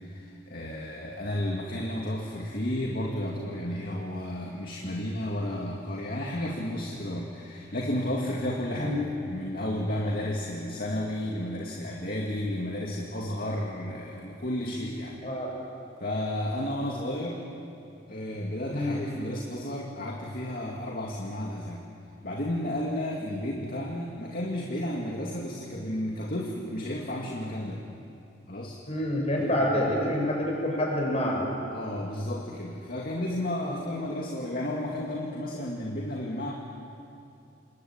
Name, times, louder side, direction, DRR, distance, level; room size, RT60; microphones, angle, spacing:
voice 1, 0.0-15.4 16.0-17.4 18.1-21.8 22.2-27.8 28.5-28.8 29.7-30.0 31.7-36.5, left 1 dB, 50° left, -2 dB, 2.4 m, -32 dB
voice 2, 28.9-31.5 33.6-33.7, left 1 dB, 35° left, -1 dB, 7.1 m, -27 dB
27.5 x 22.0 x 9.0 m, 2.7 s
head